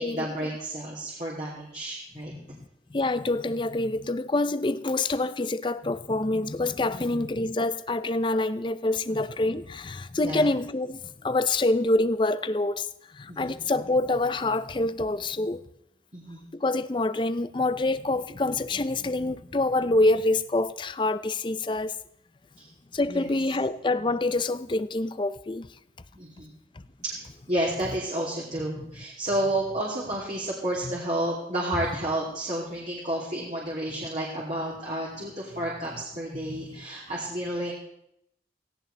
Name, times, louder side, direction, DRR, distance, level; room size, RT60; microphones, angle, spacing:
voice 1, 0.0-2.3 6.8-7.1 10.2-10.5 13.3-13.5 16.1-16.5 22.6-22.7 23.1-23.3 26.1-26.5 27.0-27.2 27.5-37.7, right 1 dB, 40° right, 2.9 m, -31 dB
voice 2, 2.9-12.9 13.1-15.6 16.5-21.9 22.9-25.7 28.8-28.9 36.5-36.7, left 2 dB, 25° left, 0.5 m, -26 dB
17.5 x 17.0 x 3.4 m
head